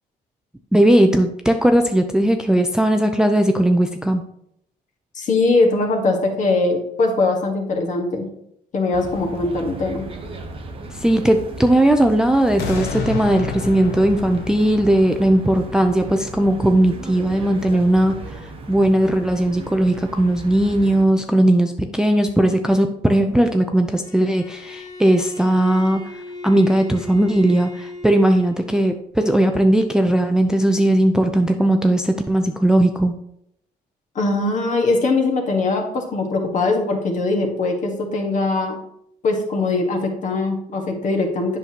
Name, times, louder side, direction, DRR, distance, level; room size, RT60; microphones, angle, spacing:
voice 1, 0.7-4.2 10.9-33.1, right 1 dB, 5° right, 5 dB, 0.4 m, -18 dB
voice 2, 5.1-8.3 8.7-10.1 34.1-38.8 39.2-41.6, left 3 dB, 45° left, 3 dB, 1.5 m, -21 dB
sound 1, 8.9-21.0, right 2 dB, 35° right, 0.9 m, -36 dB
sound 2, 12.6-17.7 18.2-18.3, left 4 dB, 80° left, 1.1 m, -31 dB
Bowed string instrument, 24.0-28.8, left 1 dB, 20° left, 1.1 m, -36 dB
8.0 x 5.9 x 2.9 m, 0.75 s
cardioid pair, 110°, 17 cm